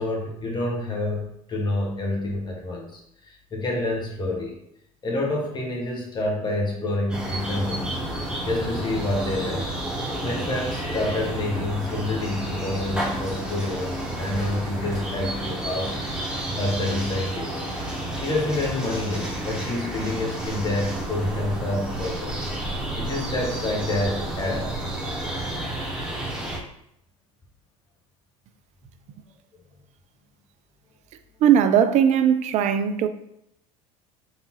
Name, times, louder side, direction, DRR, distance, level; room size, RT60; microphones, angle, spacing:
voice 1, 0.0-4.6 5.0-8.0 8.4-9.7 10.2-16.0 16.6-22.4 23.0-24.7, left 2 dB, 25° left, 1.2 m, -28 dB
sound 1, 7.1-26.6, right 1 dB, 5° right, 1.3 m, -30 dB
voice 2, 31.4-33.1, right 9 dB, 40° right, 0.4 m, -19 dB
4.0 x 3.6 x 3.0 m
figure-of-eight pair, 70°, 18 cm